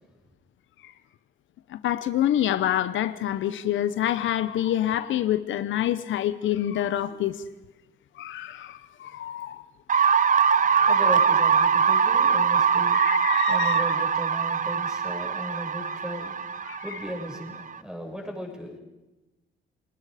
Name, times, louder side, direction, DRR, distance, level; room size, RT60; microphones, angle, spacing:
voice 1, 1.7-7.4 8.2-9.6 10.6-10.9 11.8-11.9 12.9-13.8 16.7-17.0, left 12 dB, 75° left, 0.8 m, -27 dB
sound 1, 9.9-17.8, right 6 dB, 40° right, 0.9 m, -22 dB
voice 2, 10.6-13.0 13.5-16.3 16.8-18.8, equal, 5° right, 6.3 m, -36 dB
30.0 x 19.5 x 5.0 m
cardioid pair, 90°, 20 cm